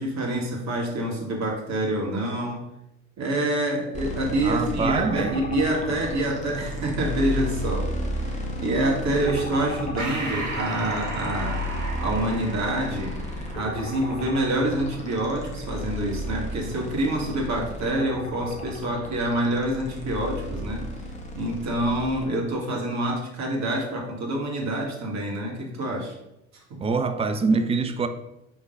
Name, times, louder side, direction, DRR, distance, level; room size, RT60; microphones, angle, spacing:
voice 1, 0.0-2.6 3.2-7.9 8.2-11.6 12.0-13.1 13.5-20.9 21.3-26.1, right 1 dB, 45° right, 2.2 m, -27 dB
sound 1, 3.9-22.3, left 1 dB, 20° left, 1.7 m, -33 dB
voice 2, 4.4-5.4 26.8-28.1, right 4 dB, 15° right, 0.6 m, -24 dB
Breathing, 10.0-14.8, right 2 dB, 80° right, 1.3 m, -35 dB
5.9 x 3.8 x 5.3 m
hypercardioid pair, 65°, 38 cm